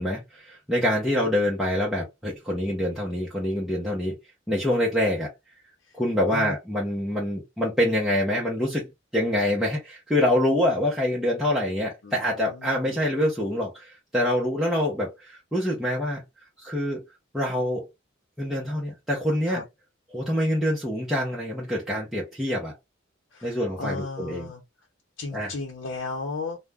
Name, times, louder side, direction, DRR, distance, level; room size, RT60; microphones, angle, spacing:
voice 1, 0.0-4.2 4.5-5.3 5.9-8.9 9.1-16.2 16.6-17.0 17.3-17.9 18.4-19.6 20.1-22.7 23.4-24.5 25.3-25.5, left 1 dB, ahead, 0.7 m, -25 dB
voice 2, 12.0-13.0 19.5-19.6 23.3-24.6 25.2-26.6, left 3 dB, 90° left, 0.7 m, -35 dB
2.4 x 2.1 x 3.3 m
head